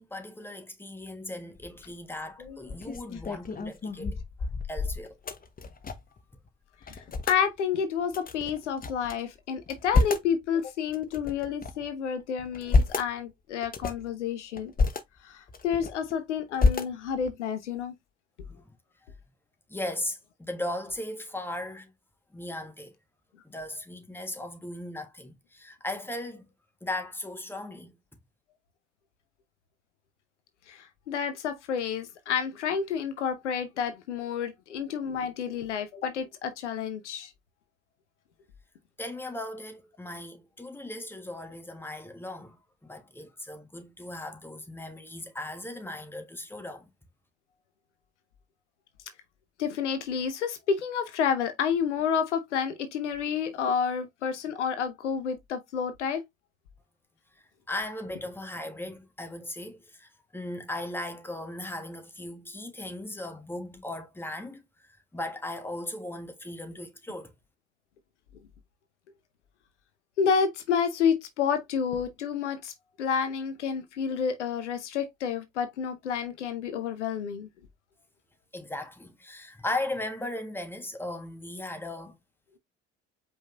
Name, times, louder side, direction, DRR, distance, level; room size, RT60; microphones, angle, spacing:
voice 1, 0.0-4.2 4.7-5.1 18.5-18.7 19.0-19.1 19.7-21.9 22.3-22.9 23.4-26.4 26.8-28.0 39.0-42.6 42.8-46.9 57.7-67.3 78.5-82.2, left 1 dB, 5° left, 1.4 m, -37 dB
sound 1, 1.6-1.9 2.4-6.2 6.5-6.6 6.8-7.4 8.1-9.1 9.6-10.3 10.9-11.9 12.4-13.1 13.6-14.1 14.6-15.0 15.5-16.1 16.6-17.3, left 3 dB, 25° left, 0.9 m, -28 dB
voice 2, 6.9-14.7 15.2-17.9 30.7-37.3 49.6-56.2 70.2-72.7 73.0-77.5, left 7 dB, 85° left, 0.8 m, -30 dB
5.1 x 3.8 x 2.5 m
figure-of-eight pair, 55°, 35 cm